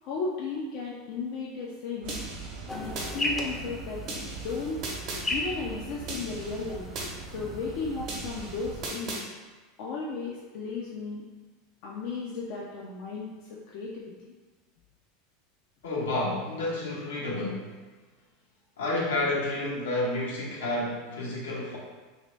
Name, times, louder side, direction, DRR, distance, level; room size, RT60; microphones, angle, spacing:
voice 1, 0.0-2.2 2.7-4.0 4.4-4.8 5.3-6.9 7.3-9.3 9.8-11.2 11.8-14.1, left 4 dB, 60° left, -4 dB, 0.5 m, -35 dB
sound 1, 2.0-8.9, right 4 dB, 80° right, 0.6 m, -42 dB
sound 2, 2.1-3.1 4.1-5.2 6.1-7.1 8.1-9.2, right 2 dB, 50° right, 0.9 m, -37 dB
sound 3, 2.7-9.1, left 1 dB, 15° left, 0.5 m, -37 dB
voice 2, 15.8-17.8 18.8-21.8, left 2 dB, 85° left, -4 dB, 0.9 m, -30 dB
2.9 x 2.7 x 3.2 m, 1.3 s
hypercardioid pair, 100°, 0 cm